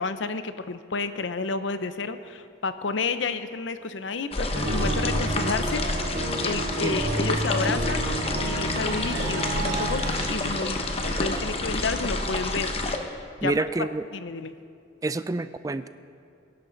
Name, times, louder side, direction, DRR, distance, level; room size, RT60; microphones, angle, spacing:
voice 1, 0.0-5.9 6.4-8.0 8.4-12.7 13.4-13.5 13.8-13.9 14.1-14.5, left 4 dB, 80° left, 11 dB, 0.7 m, -30 dB
sound 1, 4.3-13.0, left 2 dB, 30° left, 1.0 m, -29 dB
sound 2, 4.5-10.2, right 1 dB, 45° right, 3.0 m, -30 dB
sound 3, 7.0-12.7, right 2 dB, 70° right, 1.3 m, -38 dB
voice 2, 13.4-14.0 15.0-15.9, right 2 dB, 20° right, 13 dB, 0.3 m, -28 dB
23.0 x 11.0 x 4.0 m, 2.3 s
head